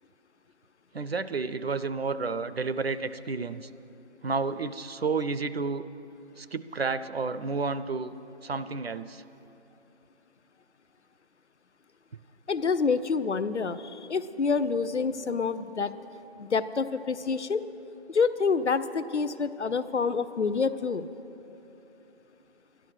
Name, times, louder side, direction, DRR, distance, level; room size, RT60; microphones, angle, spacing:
voice 1, 0.9-3.7 4.2-5.8 6.4-8.1 8.4-9.2, right 4 dB, 65° right, 13 dB, 0.5 m, -31 dB
voice 2, 12.5-15.9 16.4-17.6 18.1-21.1, left 5 dB, 85° left, 14 dB, 0.7 m, -27 dB
12.0 x 11.5 x 6.1 m, 3.0 s
figure-of-eight pair, 170°, 33 cm